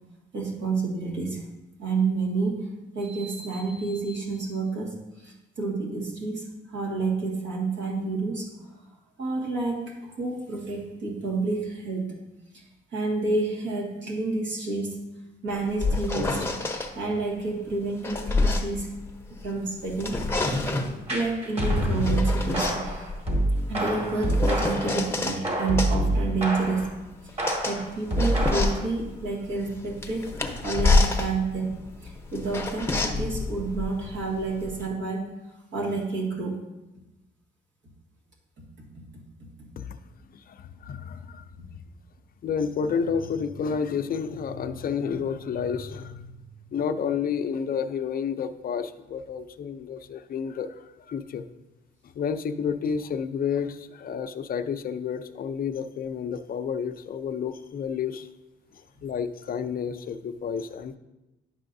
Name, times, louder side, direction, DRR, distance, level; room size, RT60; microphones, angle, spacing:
voice 1, 0.3-1.4 1.8-8.7 9.2-12.2 12.5-12.6 12.9-15.0 15.4-16.5 17.0-18.9 19.4-20.3 21.1-23.1 23.7-27.0 27.2-30.3 30.6-35.3 35.7-36.6, right 3 dB, 65° right, -3 dB, 1.8 m, -29 dB
sound 1, 15.5-16.9 17.7-19.5 19.9-21.0 21.8-25.4 25.8-34.9, left 3 dB, 10° left, 0.8 m, -28 dB
sound 2, 21.1-25.0 25.4-26.9 27.4-28.9, right 1 dB, 30° right, 2.0 m, -26 dB
voice 2, 40.5-41.4 41.7-41.8 42.4-46.4 46.7-50.7 51.1-51.4 52.2-58.3 59.0-61.0, left 6 dB, 45° left, 8 dB, 0.5 m, -30 dB
10.5 x 5.6 x 2.6 m, 1.0 s
cardioid pair, 90°, 20 cm